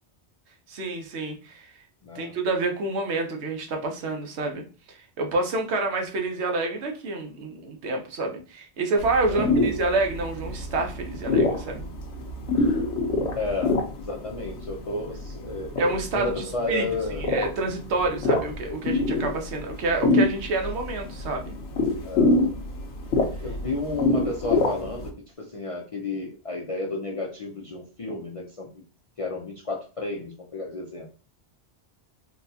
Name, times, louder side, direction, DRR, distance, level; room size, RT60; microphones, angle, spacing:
voice 1, 0.7-1.7 2.1-11.9 15.8-16.9 17.2-21.5, right 2 dB, 75° right, 3 dB, 1.0 m, -28 dB
voice 2, 2.0-2.4 9.3-9.6 13.4-15.7 16.1-17.2 22.0-22.4 23.4-28.7 29.2-31.1, left 2 dB, 45° left, -1 dB, 0.4 m, -32 dB
sound 1, 9.0-25.1, left 2 dB, 85° left, 1.0 m, -26 dB
4.1 x 2.2 x 2.7 m, 0.36 s
omnidirectional pair, 1.1 m